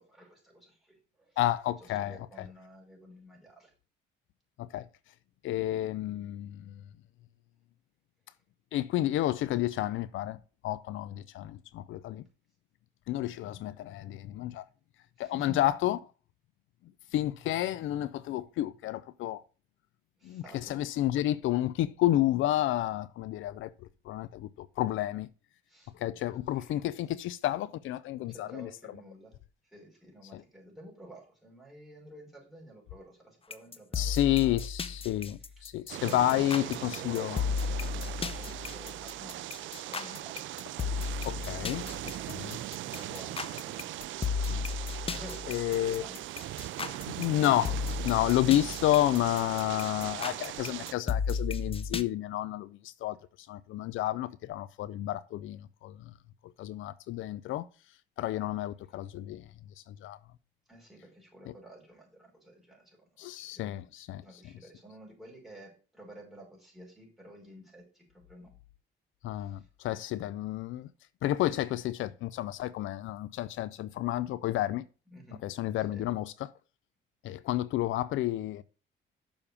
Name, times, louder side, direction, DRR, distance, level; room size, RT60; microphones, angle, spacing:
voice 1, 0.0-1.4 1.8-3.7 15.2-15.6 20.2-20.8 25.7-25.9 26.5-26.8 28.2-29.3 29.6-34.6 35.9-37.4 37.9-40.6 42.1-42.5 42.9-43.9 45.1-46.2 60.7-63.8 64.2-68.5 69.4-69.7 75.1-75.4 75.9-76.1, right 1 dB, ahead, 5.2 m, -52 dB
voice 2, 1.4-2.5 4.6-4.9 5.4-6.8 8.7-12.2 13.1-14.6 15.2-16.0 17.1-19.4 20.2-23.7 24.0-25.3 25.9-28.7 30.3-30.4 33.9-37.4 41.2-41.9 42.3-42.6 44.5-44.7 45.5-46.1 47.1-47.7 48.0-53.2 53.5-56.1 56.6-57.7 58.2-59.5 59.9-60.2 63.2-64.2 69.2-70.9 71.2-74.8 75.4-76.5 77.2-78.6, left 14 dB, 80° left, 0.5 m, -30 dB
sound 1, 33.5-52.0, left 5 dB, 30° left, 0.7 m, -35 dB
sound 2, 35.9-50.9, right 15 dB, 75° right, 0.4 m, -40 dB
7.0 x 5.2 x 7.0 m
cardioid pair, 90°, 20 cm